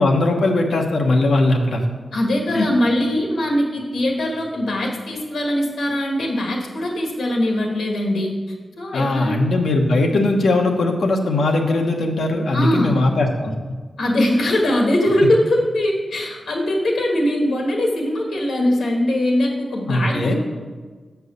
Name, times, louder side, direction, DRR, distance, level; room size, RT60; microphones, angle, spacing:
voice 1, 0.0-1.8 2.5-2.7 8.9-13.5 19.9-20.4, left 2 dB, 70° left, 2 dB, 1.1 m, -19 dB
voice 2, 2.1-8.3 8.8-9.4 12.5-13.0 14.0-20.4, left 1 dB, 90° left, 0 dB, 1.8 m, -21 dB
8.1 x 4.7 x 6.6 m, 1.4 s
wide cardioid pair, 160°, 0 cm